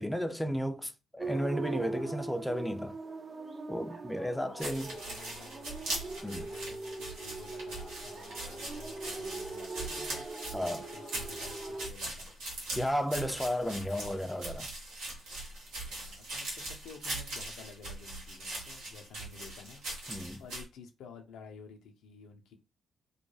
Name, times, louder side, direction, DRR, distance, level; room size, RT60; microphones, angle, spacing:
voice 1, 0.0-3.0 3.7-5.0 6.2-6.5 10.5-10.8 12.7-14.7 20.1-20.4, equal, 5° left, 0.4 m, -33 dB
sound 1, 1.2-11.9, right 3 dB, 50° right, 0.7 m, -41 dB
sound 2, 4.6-20.6, right 2 dB, 80° right, 0.9 m, -41 dB
voice 2, 4.9-10.3 10.9-12.4 13.6-13.7 15.8-22.5, left 5 dB, 75° left, 0.5 m, -52 dB
2.2 x 2.2 x 3.0 m
hypercardioid pair, 40°, 0 cm